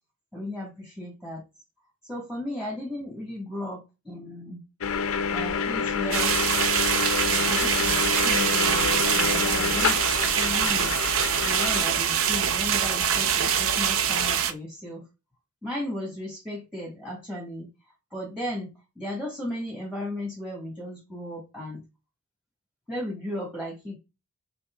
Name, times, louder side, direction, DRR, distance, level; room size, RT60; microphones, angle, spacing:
voice 1, 0.3-1.4 2.1-4.6 5.3-6.3 7.3-11.0 11.4-15.1 15.6-17.7 18.1-21.8 22.9-24.0, left 1 dB, 5° right, -2 dB, 1.3 m, -35 dB
sound 1, 4.8-11.8, left 6 dB, 65° left, 0.5 m, -28 dB
sound 2, 6.1-14.5, right 8 dB, 65° right, 0.5 m, -24 dB
5.4 x 3.0 x 2.2 m, 0.27 s
head